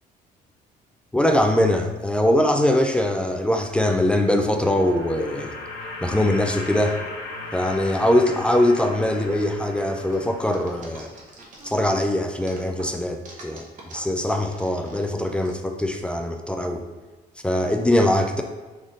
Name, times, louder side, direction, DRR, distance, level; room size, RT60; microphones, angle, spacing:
voice 1, 1.1-5.5 6.0-7.0 7.5-11.1 11.6-16.8 17.4-18.4, left 1 dB, 5° left, 4 dB, 0.4 m, -22 dB
sound 1, 4.1-11.2, left 2 dB, 75° left, 0.9 m, -37 dB
sound 2, 10.1-12.0 12.3-15.5, right 3 dB, 50° right, 1.1 m, -45 dB
3.8 x 3.6 x 3.8 m, 1.2 s
cardioid pair, 110°, 17 cm